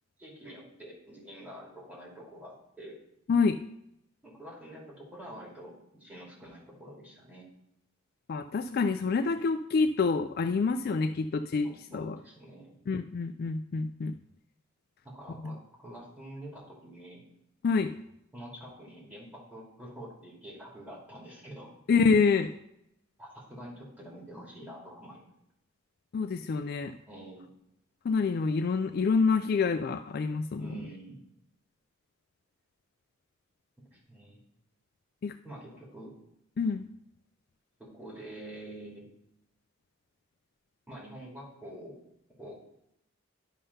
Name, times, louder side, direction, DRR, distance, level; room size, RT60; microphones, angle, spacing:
voice 1, 0.2-3.0 4.2-7.5 11.6-12.7 15.0-17.2 18.3-21.7 23.2-25.2 27.1-27.5 30.6-31.2 33.9-34.4 35.4-36.1 37.8-39.0 40.9-42.0 42.4-42.6, right 1 dB, 5° right, -6 dB, 2.8 m, -46 dB
voice 2, 8.3-11.7 11.9-12.2 12.9-14.2 15.4-15.5 17.6-17.9 21.9-22.5 26.1-27.0 28.0-30.7 35.2-35.3 36.6-36.8, left 4 dB, 45° left, 8 dB, 0.3 m, -27 dB
11.0 x 3.7 x 5.5 m, 0.79 s
head